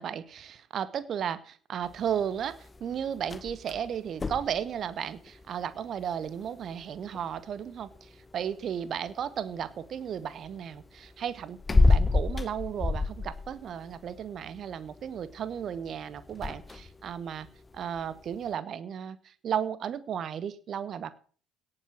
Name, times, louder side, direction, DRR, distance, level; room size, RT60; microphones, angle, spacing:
voice 1, 0.0-17.5 17.7-21.1, right 8 dB, 45° right, 16 dB, 1.2 m, -34 dB
sound 1, 1.8-18.5, left 3 dB, 20° left, 0.9 m, -32 dB
17.5 x 7.8 x 6.0 m, 0.42 s
figure-of-eight pair, 55°, 0 cm